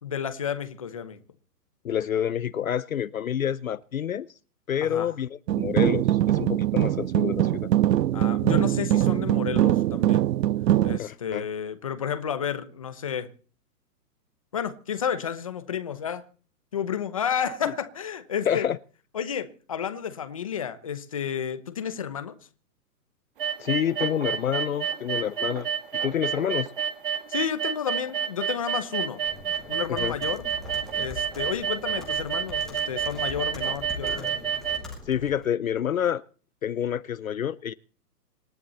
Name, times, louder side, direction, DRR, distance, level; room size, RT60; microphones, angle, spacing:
voice 1, 0.0-1.2 4.8-5.1 8.1-10.2 10.8-13.3 14.5-16.2 16.7-18.7 19.1-22.3 27.3-29.2 29.7-30.5 30.9-34.3, left 8 dB, 20° left, 0.9 m, -31 dB
voice 2, 1.8-4.3 4.7-7.5 11.0-11.5 18.5-18.8 23.6-26.7 30.0-30.1 35.1-36.2 36.6-37.7, left 9 dB, 60° left, 0.7 m, -28 dB
sound 1, 5.5-11.0, right 13 dB, 85° right, 0.7 m, -22 dB
sound 2, 23.4-34.8, right 8 dB, 30° right, 2.0 m, -29 dB
Computer keyboard, 29.2-35.5, left 3 dB, ahead, 1.4 m, -41 dB
26.5 x 11.0 x 4.2 m
hypercardioid pair, 180°, 48 cm